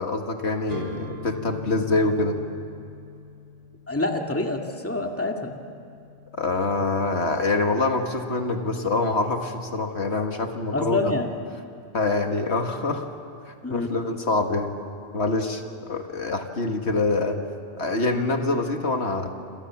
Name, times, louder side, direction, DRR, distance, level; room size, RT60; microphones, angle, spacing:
voice 1, 0.0-2.4 6.4-11.1 11.9-13.1 13.5-14.7 15.1-17.4 17.8-19.3, left 3 dB, 70° left, 4 dB, 2.0 m, -25 dB
sound 1, 0.7-8.5, left 3 dB, 35° right, 3.5 m, -43 dB
voice 2, 3.9-5.5 10.7-11.3 13.6-13.9 18.1-18.3, left 2 dB, 10° left, 2 dB, 2.2 m, -27 dB
28.0 x 27.5 x 7.4 m, 2.5 s
omnidirectional pair, 1.2 m